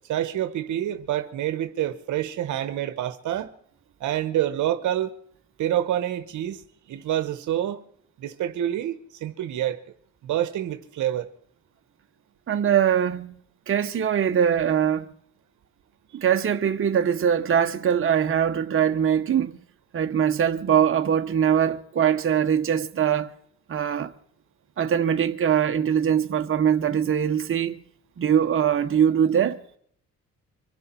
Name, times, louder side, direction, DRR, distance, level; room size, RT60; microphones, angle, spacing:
voice 1, 0.1-3.5 4.0-5.1 5.6-6.6 6.9-7.8 8.2-9.8 10.2-11.3, right 12 dB, 75° right, 1.1 m, -27 dB
voice 2, 12.5-13.3 13.7-15.1 16.1-19.5 19.9-23.3 23.7-24.1 24.8-27.8 28.2-29.6, right 8 dB, 45° right, 1.1 m, -22 dB
25.0 x 11.0 x 4.4 m
cardioid pair, 90°, 30 cm